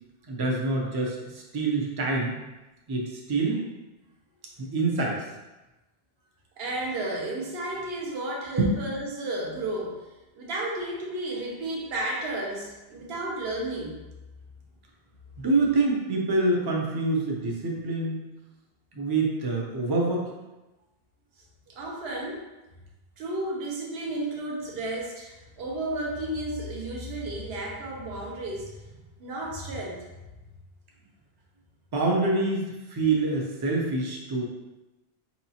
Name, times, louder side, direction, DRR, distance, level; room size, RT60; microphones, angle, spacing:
voice 1, 0.3-2.3 2.9-3.6 4.6-5.2 8.6-8.8 15.4-18.2 18.9-20.3 31.9-34.4, right 3 dB, 30° right, -1 dB, 0.5 m, -26 dB
voice 2, 6.6-10.0 10.3-13.9 21.7-22.4 23.2-28.9 29.2-30.1, right 1 dB, 65° right, -2 dB, 1.0 m, -32 dB
4.6 x 2.9 x 2.8 m, 1.0 s
omnidirectional pair, 1.1 m